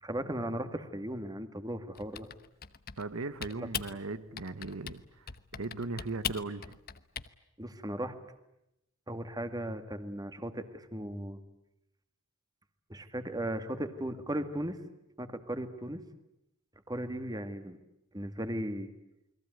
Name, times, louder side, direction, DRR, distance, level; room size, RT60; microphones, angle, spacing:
voice 1, 0.0-2.3 3.6-3.7 7.6-8.2 9.1-11.4 12.9-14.8 15.2-16.0 16.9-17.8 18.1-18.9, right 1 dB, 15° right, 9 dB, 1.9 m, -36 dB
Typing, 2.0-3.1 3.4-4.0 4.4-5.0 5.3-7.3, left 8 dB, 45° left, 1.0 m, -39 dB
voice 2, 3.0-5.3 5.6-6.8, right 3 dB, 70° right, 13 dB, 1.1 m, -38 dB
29.0 x 22.0 x 9.3 m, 0.85 s
head